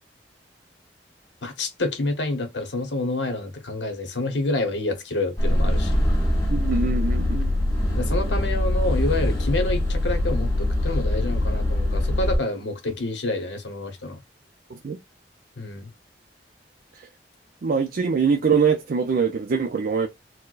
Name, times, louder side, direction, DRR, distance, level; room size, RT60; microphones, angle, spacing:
voice 1, 1.4-6.1 8.0-14.2 15.6-15.9, left 2 dB, 80° left, 0.9 m, -28 dB
sound 1, 5.4-12.4, left 1 dB, 20° left, 1.8 m, -23 dB
voice 2, 6.5-7.5 14.7-15.0 16.9-17.1 17.6-20.1, right 5 dB, 55° right, 0.4 m, -23 dB
4.3 x 2.1 x 2.4 m
head